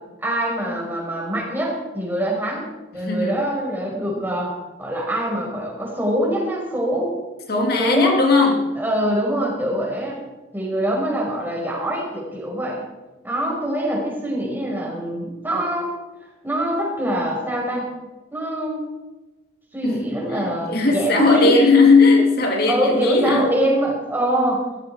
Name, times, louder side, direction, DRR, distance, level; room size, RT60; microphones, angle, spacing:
voice 1, 0.2-2.6 2.9-7.2 7.8-8.3 8.8-10.2 10.5-12.8 13.2-15.9 16.4-17.9 18.3-18.9 19.7-21.6 22.7-24.6, right 1 dB, 10° right, -3 dB, 5.6 m, -24 dB
voice 2, 3.0-3.4 7.5-8.7 19.8-23.5, left 3 dB, 55° left, 1 dB, 2.4 m, -18 dB
18.0 x 14.5 x 4.8 m, 1.1 s
head